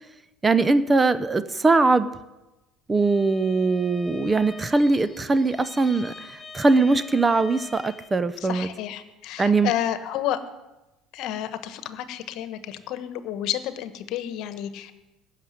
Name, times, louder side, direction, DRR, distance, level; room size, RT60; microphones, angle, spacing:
voice 1, 0.4-2.1 2.9-6.1 6.5-8.7 9.4-9.7, right 3 dB, 20° right, 14 dB, 0.8 m, -21 dB
Bowed string instrument, 2.9-8.2, left 3 dB, 20° left, 1.9 m, -44 dB
voice 2, 8.4-10.4 11.1-15.0, left 11 dB, 65° left, 12 dB, 1.2 m, -31 dB
15.0 x 6.7 x 9.7 m, 1.0 s
hypercardioid pair, 80°, 0 cm